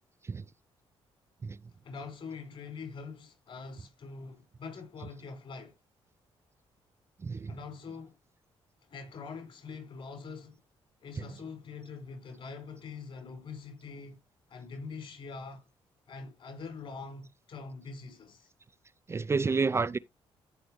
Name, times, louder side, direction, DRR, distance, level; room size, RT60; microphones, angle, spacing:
voice 1, 1.8-5.8 7.5-8.2 8.9-10.6 11.0-14.2 14.5-15.7 16.1-18.5, left 4 dB, 60° left, 5.0 m, -44 dB
voice 2, 19.1-20.0, right 4 dB, 25° right, 0.4 m, -29 dB
14.0 x 5.2 x 3.1 m
cardioid pair, 95°, 10 cm